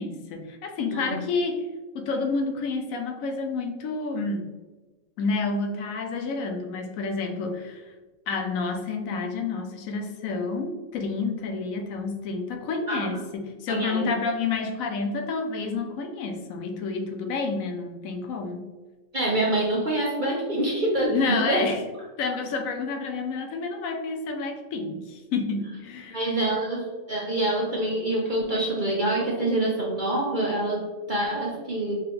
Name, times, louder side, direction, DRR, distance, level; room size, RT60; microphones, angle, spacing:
voice 1, 0.0-1.7 1.9-4.5 5.2-7.8 8.3-18.7 21.1-21.8 22.2-26.2, left 4 dB, 90° left, 5 dB, 1.1 m, -29 dB
voice 2, 0.9-1.2 12.9-13.2 13.7-14.1 19.1-21.7 26.1-31.9, right 1 dB, 45° right, -4 dB, 0.8 m, -26 dB
3.8 x 3.3 x 3.3 m, 1.2 s
omnidirectional pair, 1.4 m